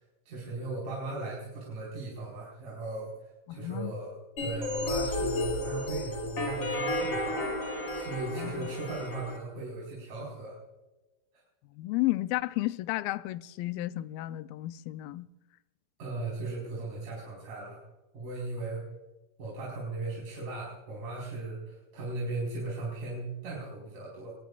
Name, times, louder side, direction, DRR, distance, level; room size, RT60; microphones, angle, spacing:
voice 1, 0.3-3.1 3.5-7.3 7.9-10.6 16.0-17.8 18.1-18.8 19.4-24.3, right 2 dB, 60° right, 6.1 m, -37 dB
voice 2, 3.5-3.9 8.4-8.7 11.8-15.3, left 18 dB, 85° left, 2.4 m, -32 dB
sound 1, 4.4-9.4, left 1 dB, 35° left, 4.3 m, -32 dB
23.0 x 19.5 x 2.4 m
omnidirectional pair, 4.0 m